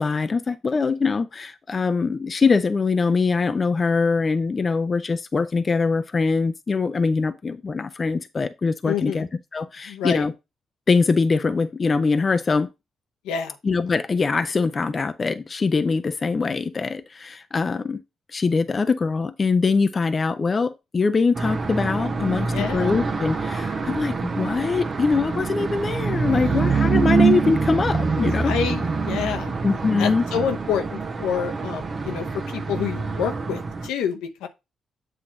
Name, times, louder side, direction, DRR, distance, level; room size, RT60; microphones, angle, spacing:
voice 1, 0.0-10.3 10.9-12.7 13.6-18.0 18.3-28.5 29.6-30.2, left 4 dB, 40° left, 0.6 m, -23 dB
voice 2, 8.8-9.2 9.9-10.2 13.2-13.6 22.3-23.0 26.3-26.6 28.2-29.5 30.0-34.5, left 7 dB, 85° left, 0.9 m, -28 dB
sound 1, 21.3-33.9, right 4 dB, 45° right, 0.9 m, -25 dB
7.8 x 2.8 x 5.8 m
supercardioid pair, 55°, 0 cm